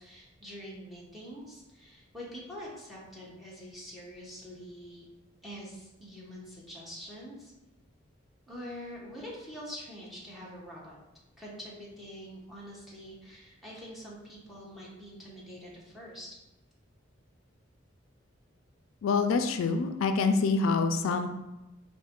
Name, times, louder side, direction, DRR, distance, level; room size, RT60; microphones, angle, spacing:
voice 1, 0.0-5.1 5.4-7.5 8.5-11.0 11.4-16.3, equal, ahead, -6 dB, 1.0 m, -45 dB
voice 2, 19.0-21.3, left 4 dB, 85° left, 8 dB, 0.3 m, -26 dB
4.3 x 2.6 x 3.6 m, 0.98 s
head